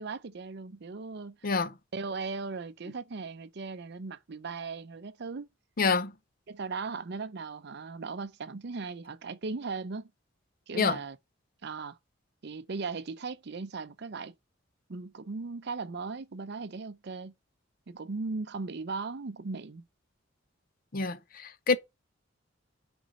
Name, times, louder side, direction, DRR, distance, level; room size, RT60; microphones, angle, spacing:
voice 1, 0.0-1.6 1.9-5.5 6.5-10.1 10.7-11.2 11.6-12.0 12.4-14.3 14.9-17.3 17.9-19.8, right 4 dB, 60° right, 0.6 m, -38 dB
voice 2, 5.8-6.1 10.7-11.0 20.9-21.8, left 4 dB, 45° left, 0.7 m, -27 dB
6.0 x 5.2 x 5.3 m
head